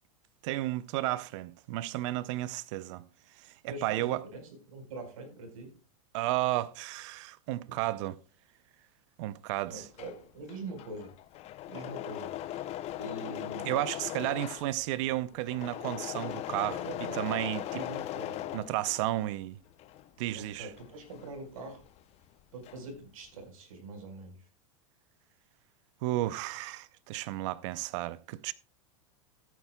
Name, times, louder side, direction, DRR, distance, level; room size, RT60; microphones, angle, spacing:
voice 1, 0.4-3.0 3.4-4.2 6.1-8.2 9.2-9.8 13.6-16.8 17.1-17.6 18.5-19.6 20.2-20.7 26.0-28.5, right 16 dB, 60° right, 0.6 m, -32 dB
voice 2, 3.7-5.7 7.7-7.8 9.7-11.1 11.7-12.7 13.0-13.8 16.6-17.3 17.7-18.5 20.3-21.9 22.5-24.5, right 2 dB, 80° right, 4.6 m, -43 dB
Engine / Mechanisms, 9.7-19.3 19.7-22.0 22.3-23.0, left 13 dB, 35° left, 0.7 m, -39 dB
15.0 x 9.3 x 2.3 m
hypercardioid pair, 115°, 17 cm